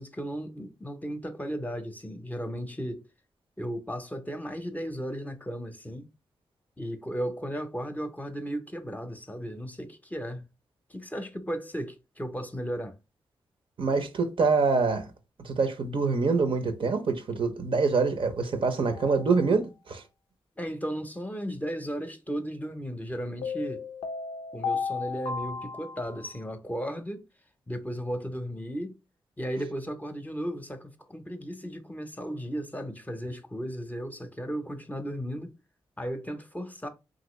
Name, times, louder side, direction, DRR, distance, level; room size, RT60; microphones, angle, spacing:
voice 1, 0.0-3.0 3.6-6.1 6.8-10.5 10.9-12.9 20.6-23.9 24.5-27.2 27.7-29.0 29.4-35.5 36.0-36.9, equal, 15° left, 0.7 m, -35 dB
voice 2, 13.8-15.1 15.4-20.0, right 4 dB, 55° right, 0.6 m, -25 dB
sound 1, 19.0-19.3 23.4-26.4, left 5 dB, 90° left, 0.4 m, -34 dB
2.9 x 2.6 x 3.0 m
supercardioid pair, 45°, 10 cm